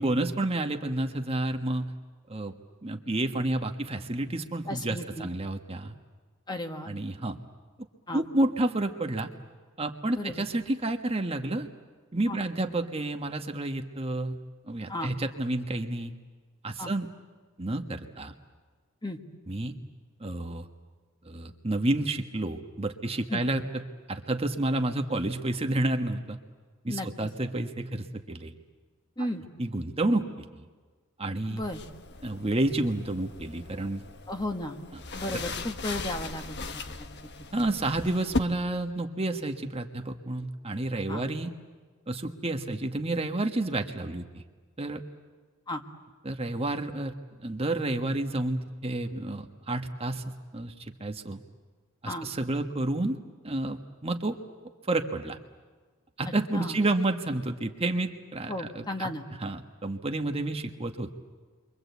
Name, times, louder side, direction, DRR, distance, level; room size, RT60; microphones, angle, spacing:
voice 1, 0.0-1.9 2.3-2.5 2.8-5.9 6.8-7.4 8.1-9.3 9.8-11.7 12.1-14.4 14.7-16.1 16.6-17.1 17.6-18.3 19.5-19.7 20.2-20.7 21.2-23.8 24.1-26.4 26.8-28.5 29.2-29.3 29.6-30.7 31.2-31.6 32.2-34.0 35.3-35.4 37.5-41.5 42.1-44.4 44.8-45.0 46.2-47.1 47.4-51.4 52.0-53.2 53.4-54.4 54.9-55.4 56.2-59.1 59.4-61.1, right 2 dB, 30° right, 5 dB, 1.3 m, -30 dB
voice 2, 4.7-5.3 6.5-6.9 8.1-8.2 10.1-10.4 12.3-12.4 14.9-15.1 16.8-16.9 19.0-19.2 23.3-23.4 26.9-27.3 29.2-29.4 31.5-31.8 34.3-34.8 35.1-37.1 37.5-37.7 41.1-41.3 45.7-45.8 52.0-52.3 56.5-56.8 58.5-59.2, left 1 dB, 20° left, 5 dB, 1.6 m, -34 dB
sound 1, 31.6-38.4, left 3 dB, 55° left, 1.2 m, -38 dB
29.5 x 24.0 x 8.2 m, 1.4 s
head